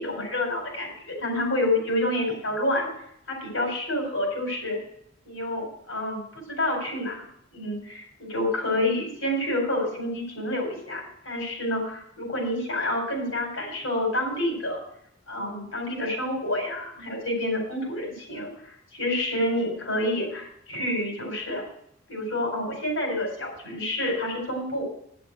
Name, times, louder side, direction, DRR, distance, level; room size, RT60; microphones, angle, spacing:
voice 1, 0.0-2.9 3.3-4.8 5.2-7.2 7.5-14.8 15.3-21.6 22.1-24.8, left 1 dB, 80° left, 0 dB, 4.6 m, -28 dB
9.7 x 7.0 x 6.1 m, 0.72 s
head